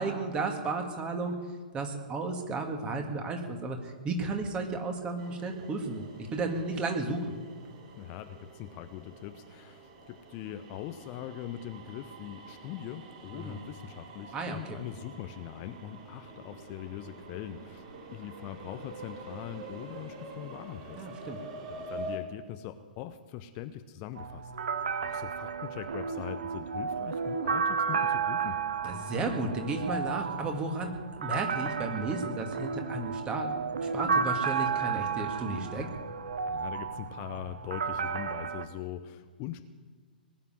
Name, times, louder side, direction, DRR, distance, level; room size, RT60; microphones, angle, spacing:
voice 1, 0.0-1.4 1.7-7.3 13.3-13.6 14.3-14.8 21.0-21.4 28.8-30.9 31.2-33.5 33.9-35.9, right 3 dB, 20° right, 4 dB, 2.1 m, -33 dB
sound 1, 5.2-22.2, right 2 dB, 40° right, 3.0 m, -46 dB
voice 2, 8.0-17.8 18.1-21.4 21.7-24.5 25.0-28.6 36.5-39.6, left 11 dB, 30° left, 9 dB, 0.7 m, -42 dB
sound 2, 24.2-38.6, right 6 dB, 65° right, 0.9 m, -32 dB
19.5 x 7.3 x 9.8 m, 1.5 s
figure-of-eight pair, 115°, 5 cm